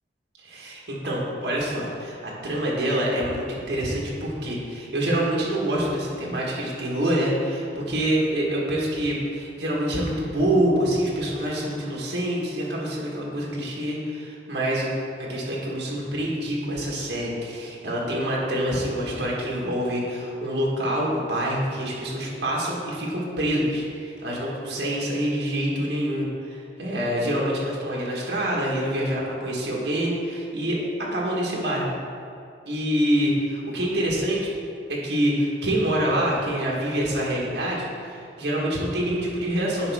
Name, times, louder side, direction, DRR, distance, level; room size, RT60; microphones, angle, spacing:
voice 1, 0.4-14.9 15.3-30.8 31.1-31.9 32.7-34.5 34.9-39.9, right 1 dB, 75° right, -4 dB, 1.5 m, -26 dB
10.0 x 5.3 x 3.5 m, 2.5 s
head